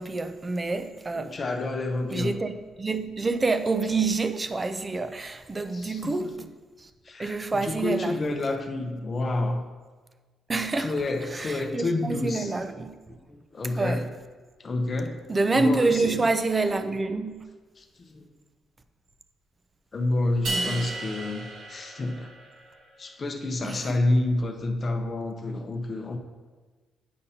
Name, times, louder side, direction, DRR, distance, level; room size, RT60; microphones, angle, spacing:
voice 1, 0.0-1.3 2.1-2.5 2.8-6.4 6.8-6.9 7.2-8.4 10.5-10.9 11.3-13.2 13.8-14.0 15.3-17.4 20.5-21.0 23.6-24.0, right 3 dB, 25° right, 0.5 m, -27 dB
voice 2, 1.1-2.4 5.7-6.5 7.0-9.6 10.8-12.5 13.1-14.0 14.6-15.2 15.5-16.2 17.8-18.3 19.9-22.3 23.0-26.2, left 2 dB, 40° left, 0.7 m, -29 dB
sound 1, 20.4-22.7, right 2 dB, 80° right, 1.4 m, -34 dB
8.3 x 5.2 x 2.8 m
cardioid pair, 90°, 0 cm